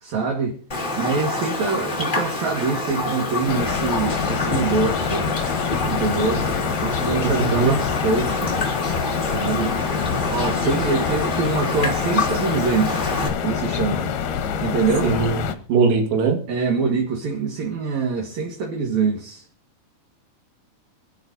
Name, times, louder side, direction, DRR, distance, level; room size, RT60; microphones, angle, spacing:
voice 1, 0.0-0.6 1.0-5.4 5.9-6.5 6.8-8.5 9.2-9.7 10.3-13.1 13.4-14.1 14.6-15.1 16.5-19.4, right 4 dB, 55° right, 0 dB, 2.4 m, -24 dB
Raindrop, 0.7-13.3, left 2 dB, 30° left, 0.9 m, -27 dB
sound 1, 3.5-15.5, left 7 dB, 70° left, 2.3 m, -26 dB
voice 2, 7.2-7.8 15.0-15.4 15.7-16.4, right 5 dB, 85° right, 3 dB, 3.9 m, -20 dB
25.5 x 10.5 x 2.7 m, 0.41 s
omnidirectional pair, 4.7 m